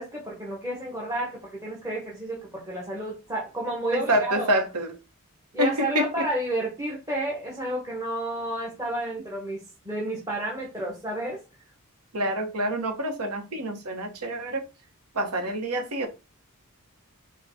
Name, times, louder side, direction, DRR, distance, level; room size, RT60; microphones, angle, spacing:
voice 1, 0.0-4.5 5.5-11.4, right 1 dB, 15° right, 1.2 m, -31 dB
voice 2, 3.9-5.0 5.6-6.3 12.1-14.6 15.1-16.1, right 1 dB, 90° right, 1.0 m, -27 dB
4.7 x 2.3 x 4.0 m
head